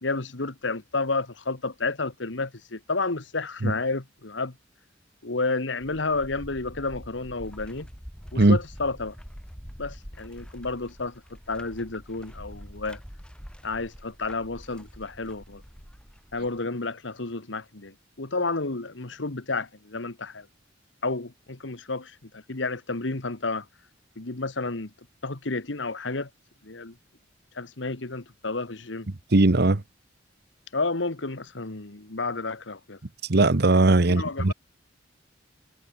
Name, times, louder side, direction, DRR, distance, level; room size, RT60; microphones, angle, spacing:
voice 1, 0.0-4.6 5.2-7.9 8.3-9.2 9.8-11.2 11.5-13.0 13.6-15.6 16.3-20.5 21.0-23.7 24.2-24.9 25.2-26.3 26.6-26.9 27.6-29.1 30.7-33.0 34.0-34.5, left 3 dB, 75° left, 1.7 m, -31 dB
sound 1, 5.8-16.6, equal, 5° left, 6.4 m, -45 dB
voice 2, 29.3-29.8 33.3-34.5, right 2 dB, 60° right, 1.2 m, -19 dB
head